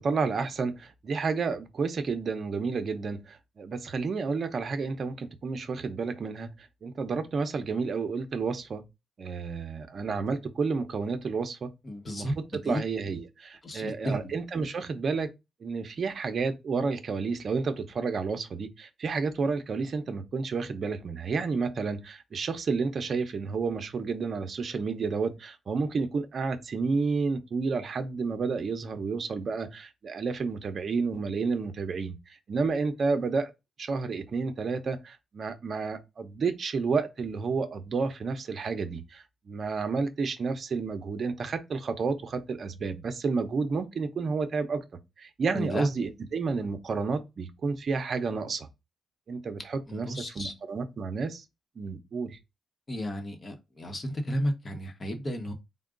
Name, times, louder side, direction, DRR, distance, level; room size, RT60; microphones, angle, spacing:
voice 1, 0.0-8.8 9.2-11.7 12.1-15.3 15.6-32.2 32.5-33.5 33.8-44.8 45.2-48.7 49.3-51.4 51.8-52.4, right 4 dB, 50° right, 0.7 m, -31 dB
voice 2, 11.8-12.8 13.6-14.2 45.5-45.9 49.9-50.5 52.9-55.5, equal, 35° left, 1.0 m, -33 dB
3.6 x 2.2 x 3.7 m
cardioid pair, 105°, 0 cm